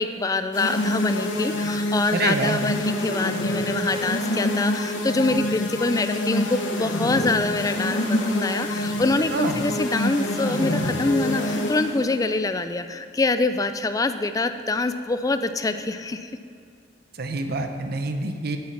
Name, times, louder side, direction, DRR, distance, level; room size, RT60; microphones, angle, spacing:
voice 1, 0.0-16.3, left 3 dB, 20° left, 10 dB, 0.3 m, -25 dB
sound 1, 0.5-12.1, left 1 dB, 85° left, 1.0 m, -26 dB
voice 2, 2.1-2.6 9.3-9.6 17.2-18.6, right 3 dB, 55° right, 7 dB, 0.7 m, -26 dB
8.1 x 7.6 x 5.8 m, 2.2 s
head